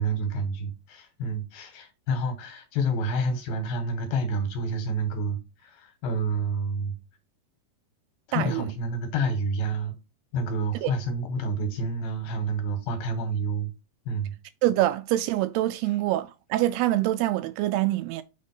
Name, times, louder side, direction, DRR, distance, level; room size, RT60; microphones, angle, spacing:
voice 1, 0.0-6.9 8.3-10.0 10.3-13.7 14.1-14.3, right 2 dB, 70° left, 3.0 m, -29 dB
voice 2, 8.3-8.6 10.8-10.9 14.6-18.2, right 15 dB, 85° right, 2.4 m, -25 dB
6.6 x 3.6 x 5.4 m
omnidirectional pair, 4.8 m